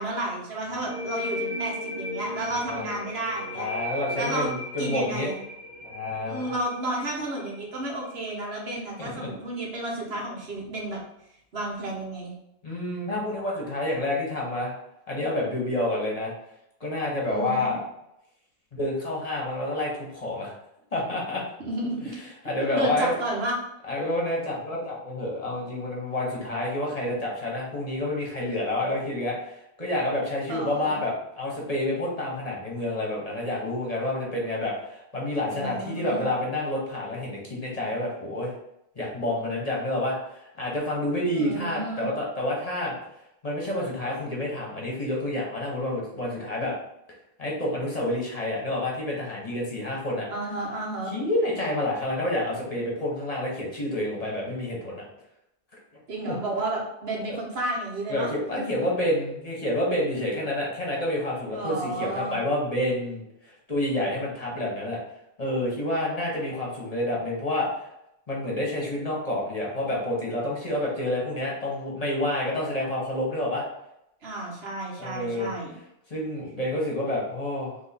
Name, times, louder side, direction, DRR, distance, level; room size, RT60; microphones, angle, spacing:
voice 1, 0.0-3.7 4.1-4.5 4.8-5.4 6.3-11.0 11.5-12.3 17.3-17.7 21.6-22.2 22.7-23.6 30.5-31.0 35.5-36.3 41.3-42.1 50.3-51.1 56.1-58.7 61.5-62.4 74.2-75.7, right 2 dB, 75° right, -2 dB, 1.4 m, -32 dB
sound 1, 0.8-8.2, left 1 dB, 30° right, 0.8 m, -36 dB
voice 2, 3.5-5.3 5.8-6.5 9.0-9.3 12.6-14.7 15.1-16.3 16.8-17.8 18.7-20.5 20.9-21.4 22.4-23.1 23.9-38.5 38.9-42.9 43.4-46.7 47.4-50.3 51.1-55.0 56.2-56.4 57.3-57.4 58.1-65.0 65.4-67.8 68.3-73.6 75.0-75.5 76.1-77.8, left 1 dB, 40° left, -3 dB, 1.2 m, -29 dB
3.6 x 3.1 x 4.3 m, 0.82 s
omnidirectional pair, 1.0 m